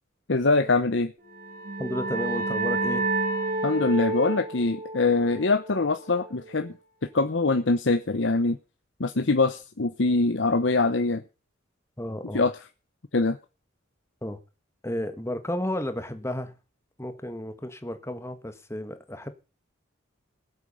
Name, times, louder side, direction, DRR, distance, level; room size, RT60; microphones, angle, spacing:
voice 1, 0.3-1.1 3.6-6.7 7.1-8.6 9.0-11.2 12.3-12.5 13.1-13.4, left 3 dB, 65° left, 0.9 m, -23 dB
sound 1, 1.3-6.7, right 3 dB, 50° right, 2.9 m, -30 dB
voice 2, 1.8-3.0 12.0-12.5 14.2-14.4 14.8-16.5 17.0-19.3, left 1 dB, 15° left, 1.5 m, -32 dB
19.5 x 8.2 x 5.6 m
head